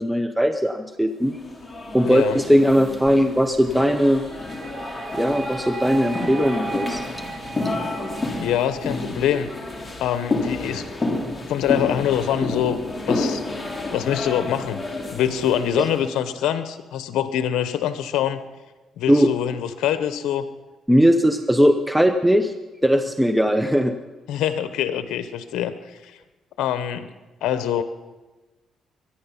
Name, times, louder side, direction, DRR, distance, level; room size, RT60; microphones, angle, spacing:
voice 1, 0.0-1.4 1.9-4.2 5.1-7.2 15.8-15.9 19.1-19.3 20.9-22.5 22.8-23.9, equal, 5° right, 8 dB, 0.8 m, -19 dB
sound 1, 1.3-16.0, left 2 dB, 20° left, 2.7 m, -30 dB
voice 2, 2.0-2.4 8.4-9.5 10.0-10.9 11.5-12.8 13.1-13.4 13.9-14.8 15.1-18.4 19.0-20.5 24.3-26.2 26.6-27.1 27.4-27.8, left 10 dB, 85° left, 11 dB, 0.8 m, -24 dB
sound 2, 4.2-9.2, right 4 dB, 40° right, 0.7 m, -36 dB
23.0 x 10.0 x 5.6 m, 1.2 s
cardioid pair, 90°, 0 cm